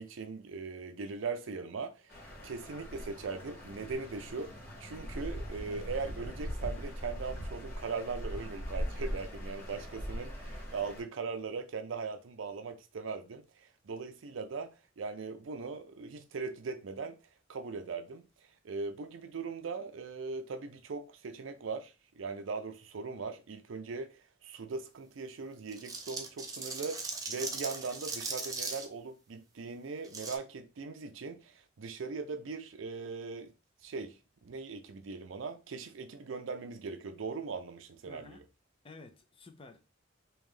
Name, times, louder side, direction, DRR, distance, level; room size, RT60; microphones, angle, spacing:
voice 1, 0.0-4.5 4.8-17.2 17.5-33.5 33.8-38.4, right 4 dB, 75° right, 0.5 m, -40 dB
sound 1, 2.1-11.0, equal, 50° left, 1.4 m, -40 dB
sound 2, 25.7-28.9 30.0-30.4, right 3 dB, 20° right, 0.6 m, -39 dB
voice 2, 38.1-38.4 38.8-39.8, left 3 dB, 30° left, 0.5 m, -52 dB
3.3 x 2.9 x 3.6 m
head